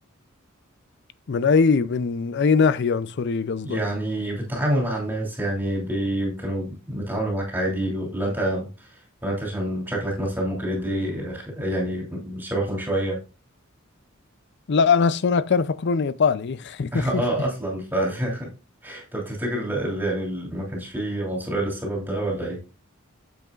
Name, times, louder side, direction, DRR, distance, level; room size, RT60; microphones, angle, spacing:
voice 1, 1.3-3.8 14.7-17.2, left 5 dB, 55° left, 0.5 m, -21 dB
voice 2, 3.6-13.2 16.9-18.5 18.8-22.6, right 1 dB, 10° right, 2.8 m, -27 dB
9.2 x 7.9 x 2.4 m
head